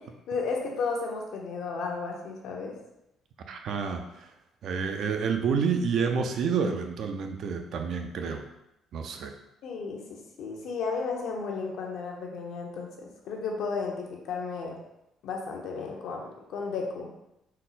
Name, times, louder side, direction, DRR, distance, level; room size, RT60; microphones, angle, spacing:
voice 1, 0.0-2.8 9.6-14.8 15.2-17.1, left 4 dB, 75° left, 0 dB, 0.8 m, -34 dB
voice 2, 3.5-4.3 4.6-8.4 8.9-9.3, right 6 dB, 65° right, 5 dB, 0.5 m, -29 dB
4.2 x 2.1 x 4.0 m, 0.87 s
cardioid pair, 115°, 0 cm